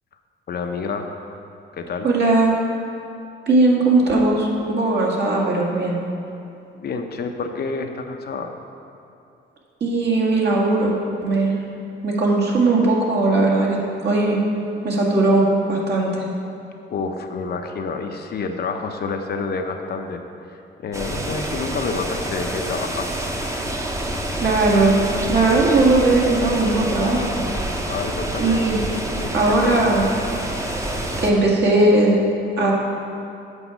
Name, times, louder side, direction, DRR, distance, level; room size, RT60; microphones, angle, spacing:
voice 1, 0.5-1.1 1.7-2.1 6.8-8.5 16.9-20.2 20.5-23.2 27.9-28.7 29.2-29.8, left 4 dB, 55° left, 5 dB, 0.7 m, -28 dB
voice 2, 2.0-2.6 3.5-6.0 9.8-10.9 11.2-11.5 12.0-13.8 14.0-14.4 14.8-16.2 24.4-24.9 25.3-27.5 28.4-28.8 29.3-30.1 31.2-32.2 32.6-32.7, right 2 dB, 55° right, -3 dB, 1.9 m, -18 dB
sound 1, 20.9-31.3, right 1 dB, 15° right, 0.9 m, -27 dB
8.1 x 4.8 x 7.1 m, 2.6 s
cardioid pair, 90°, 20 cm